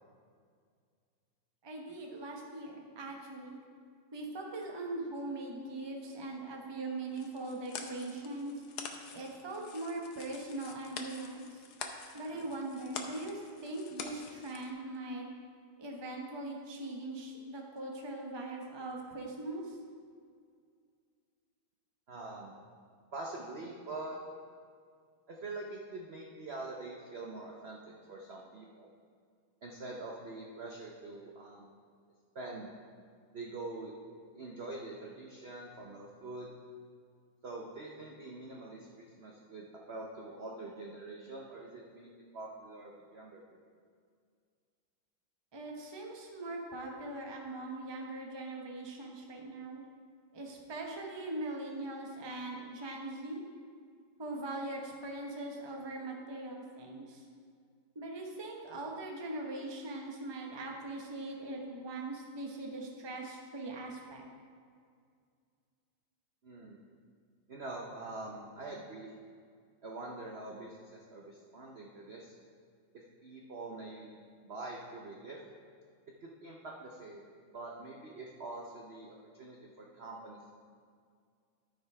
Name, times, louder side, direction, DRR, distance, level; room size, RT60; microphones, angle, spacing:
voice 1, 1.6-3.6 4.1-8.6 9.1-11.6 12.1-15.3 15.8-19.8 45.5-49.8 50.3-53.5 54.2-57.2 57.9-64.2, right 2 dB, 20° right, 0 dB, 0.6 m, -41 dB
sound 1, 7.1-14.7, left 5 dB, 60° left, 1.2 m, -46 dB
voice 2, 22.1-22.6 23.1-24.2 25.3-28.9 29.6-31.7 32.3-32.7 33.3-33.9 34.3-36.5 37.4-43.6 66.4-66.8 67.5-69.1 69.8-72.4 72.9-75.4 76.2-80.4, right 2 dB, 60° right, -1 dB, 0.6 m, -45 dB
13.0 x 5.2 x 4.8 m, 2.2 s
omnidirectional pair, 2.2 m